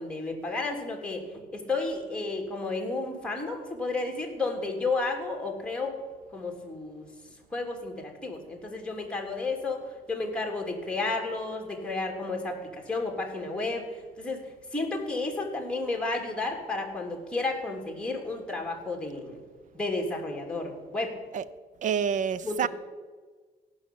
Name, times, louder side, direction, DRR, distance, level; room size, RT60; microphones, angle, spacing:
voice 1, 0.0-6.0 6.3-7.1 7.5-14.4 14.7-19.4 19.7-21.2 22.4-22.7, left 3 dB, 5° left, 1 dB, 2.8 m, -32 dB
voice 2, 21.8-22.7, right 7 dB, 50° right, 18 dB, 0.6 m, -27 dB
17.5 x 5.8 x 8.5 m, 1.4 s
cardioid pair, 110°, 17 cm